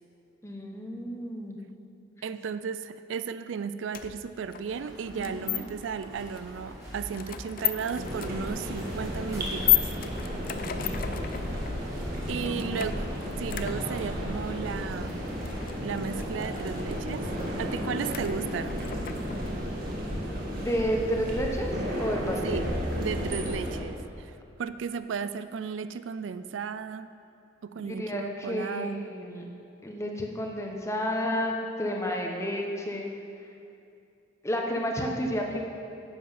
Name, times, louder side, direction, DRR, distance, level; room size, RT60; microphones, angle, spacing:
voice 1, 0.4-1.6 5.1-5.6 10.6-11.0 12.4-13.1 20.5-22.6 27.8-29.4 29.8-33.1 34.4-35.6, equal, 15° left, 0 dB, 1.0 m, -31 dB
voice 2, 2.2-10.0 12.3-13.1 13.4-15.2 15.8-17.3 17.6-18.8 22.4-22.7 22.9-24.3 24.6-27.1 27.6-29.1, right 6 dB, 80° right, 12 dB, 0.4 m, -34 dB
sound 1, 3.9-19.7, left 12 dB, 50° left, 0.5 m, -34 dB
sound 2, 4.7-18.0, equal, 15° right, 2.4 m, -45 dB
sound 3, 8.0-23.8, equal, 50° right, 1.7 m, -33 dB
10.5 x 7.8 x 5.7 m, 2.5 s
head